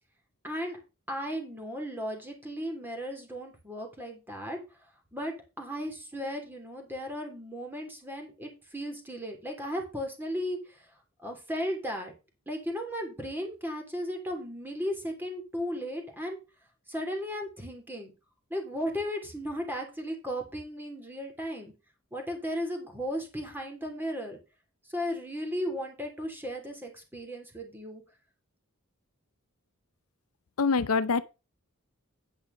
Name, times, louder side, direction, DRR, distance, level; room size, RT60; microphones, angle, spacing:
voice 1, 0.4-0.8 1.1-4.6 5.1-10.8 11.2-12.1 12.5-16.4 16.9-18.1 18.5-21.7 22.1-24.4 24.9-28.0, equal, 10° right, 3.0 m, -35 dB
voice 2, 30.6-31.2, left 4 dB, 80° left, 0.6 m, -24 dB
9.3 x 5.5 x 5.6 m
head